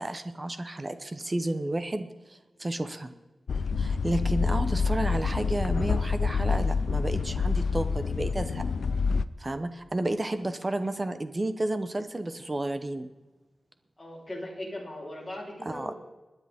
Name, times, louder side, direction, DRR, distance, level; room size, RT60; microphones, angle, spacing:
voice 1, 0.0-3.1 3.8-8.6 9.4-13.1 15.7-15.9, right 1 dB, 25° right, 9 dB, 0.9 m, -31 dB
sound 1, 3.5-9.3, left 5 dB, 75° left, 0.5 m, -27 dB
voice 2, 14.0-15.9, left 1 dB, 10° left, -4 dB, 3.7 m, -39 dB
25.5 x 10.0 x 3.6 m, 1.2 s
wide cardioid pair, 165°, 0 cm